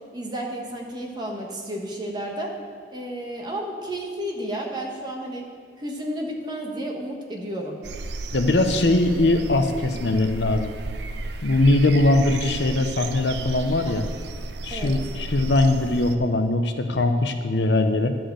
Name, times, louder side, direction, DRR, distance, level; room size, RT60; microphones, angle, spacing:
voice 1, 0.1-2.5 2.9-5.5 5.8-7.8 13.9-14.0 14.7-14.9, right 1 dB, 25° right, 0 dB, 1.3 m, -32 dB
sound 1, 7.8-16.2, right 2 dB, 65° right, 0.6 m, -33 dB
voice 2, 8.3-10.7 11.4-14.0 14.6-18.2, left 2 dB, 70° left, 7 dB, 0.7 m, -21 dB
11.0 x 4.6 x 7.6 m, 2.1 s
head